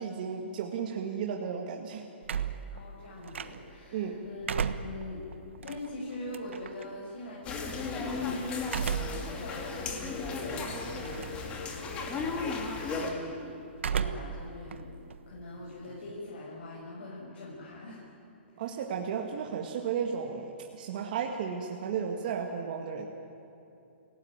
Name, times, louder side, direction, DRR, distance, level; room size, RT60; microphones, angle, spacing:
voice 1, 0.0-2.1 3.9-4.2 18.6-23.1, right 7 dB, 45° right, 2 dB, 1.9 m, -34 dB
sound 1, 2.2-3.9 4.3-6.8 8.6-9.3 9.8-9.9 11.0-11.5 11.8-12.2 13.7-14.4 14.7-16.1, right 7 dB, 80° right, 1.3 m, -34 dB
voice 2, 2.7-5.2 5.6-13.5 13.9-14.9 15.3-18.0 18.6-18.7, left 1 dB, 70° left, -5 dB, 6.4 m, -43 dB
sound 2, 7.4-13.1, left 4 dB, 15° left, 2.5 m, -35 dB
28.0 x 18.0 x 9.9 m, 2.8 s
hypercardioid pair, 165°, 6 cm